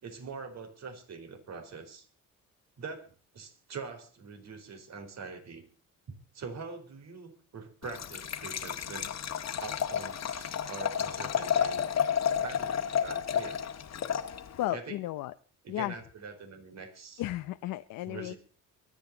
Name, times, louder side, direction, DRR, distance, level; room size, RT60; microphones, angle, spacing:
voice 1, 0.0-2.1 2.8-5.6 6.1-9.1 9.6-11.9 12.4-13.6 14.7-15.0 15.6-17.2 18.0-18.4, right 4 dB, 55° right, 6 dB, 4.4 m, -43 dB
Liquid, 7.8-14.7, left 8 dB, 55° left, 1.7 m, -31 dB
voice 2, 14.6-15.3 15.7-15.9 17.2-18.3, left 15 dB, 85° left, 10 dB, 0.9 m, -34 dB
24.0 x 9.4 x 4.0 m, 0.41 s
cardioid pair, 90°, 32 cm